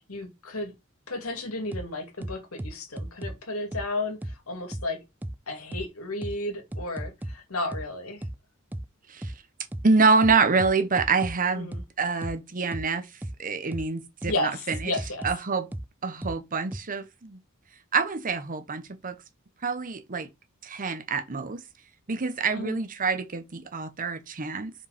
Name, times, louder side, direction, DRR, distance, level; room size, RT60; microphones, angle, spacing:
voice 1, 0.1-0.7 1.1-5.0 5.5-8.3 11.6-11.8 14.3-15.3 22.5-22.8, left 2 dB, 85° left, 2.4 m, -33 dB
sound 1, 1.7-1.8 2.2-3.3 3.7-3.8 4.2-4.3 4.7-4.8 5.2-5.3 5.7-5.8 6.2-6.3 6.7-7.3 7.7-7.8 8.2-8.3 8.7-8.8 9.2-9.3 9.7-9.8 10.2-11.3 11.7-11.8 12.2-12.3 12.7-12.8 13.2-13.3 13.7-13.8 14.2-14.3 14.7-15.3 15.7-15.8 16.2-16.3 16.7-16.8, right 1 dB, 10° right, 0.4 m, -34 dB
voice 2, 9.8-11.7 12.0-13.1 13.4-15.0 15.2-15.7 16.0-17.4 17.9-19.2 19.6-20.3 20.6-21.6 22.1-24.7, right 4 dB, 40° right, 0.8 m, -26 dB
5.4 x 4.6 x 4.9 m
head